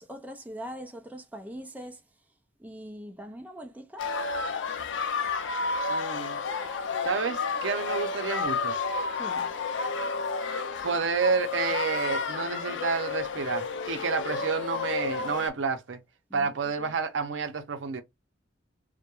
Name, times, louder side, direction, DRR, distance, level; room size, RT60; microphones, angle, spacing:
voice 1, 0.0-2.0 2.6-4.1 9.2-9.5 16.3-16.5 16.8-16.9, equal, 10° right, 0.4 m, -42 dB
sound 1, 4.0-15.5, left 4 dB, 75° left, 0.4 m, -31 dB
voice 2, 5.9-6.4 7.0-8.8 10.8-16.0 16.3-18.0, right 5 dB, 85° right, 0.5 m, -30 dB
2.2 x 2.1 x 2.9 m
head